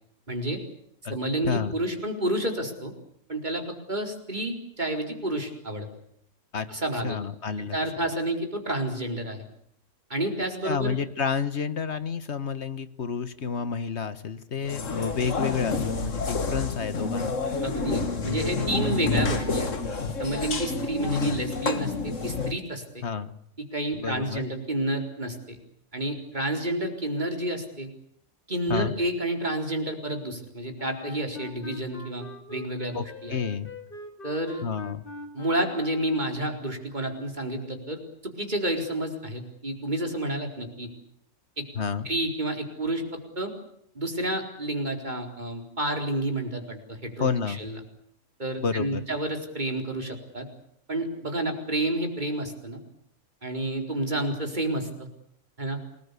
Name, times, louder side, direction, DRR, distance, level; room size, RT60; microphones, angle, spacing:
voice 1, 0.3-0.6 1.1-2.9 3.3-5.9 6.7-7.2 7.7-9.4 10.1-11.0 17.6-19.7 20.2-23.0 23.7-25.6 25.9-27.9 28.5-33.4 34.2-34.6 35.3-40.9 41.6-41.7 42.0-43.5 43.9-47.8 48.4-50.5 50.9-52.8 53.4-55.1 55.6-55.8, right 1 dB, 35° right, 3 dB, 4.4 m, -30 dB
voice 2, 7.0-7.8 10.6-17.4 21.3-21.4 23.0-23.3 23.9-24.4 28.7-28.9 32.9-33.7 34.6-35.0 41.7-42.1 47.2-47.6 48.6-49.0, left 6 dB, 60° left, 13 dB, 1.6 m, -30 dB
sound 1, 14.6-22.5, left 3 dB, 85° left, 2.2 m, -28 dB
Wind instrument woodwind instrument, 30.8-36.5, left 3 dB, 45° left, 2.4 m, -42 dB
29.0 x 20.0 x 8.3 m, 0.69 s
omnidirectional pair, 1.3 m